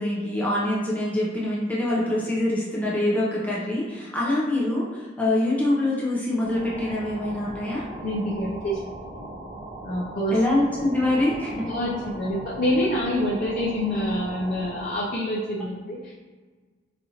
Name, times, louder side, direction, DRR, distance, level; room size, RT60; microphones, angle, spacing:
voice 1, 0.0-7.8 10.3-11.7, left 1 dB, 10° left, -6 dB, 0.6 m, -24 dB
sound 1, 6.3-15.1, right 1 dB, 40° right, 0.7 m, -39 dB
voice 2, 8.0-8.8 9.8-10.4 11.7-16.1, equal, 50° left, -6 dB, 0.5 m, -26 dB
4.1 x 2.5 x 2.8 m, 1.4 s
head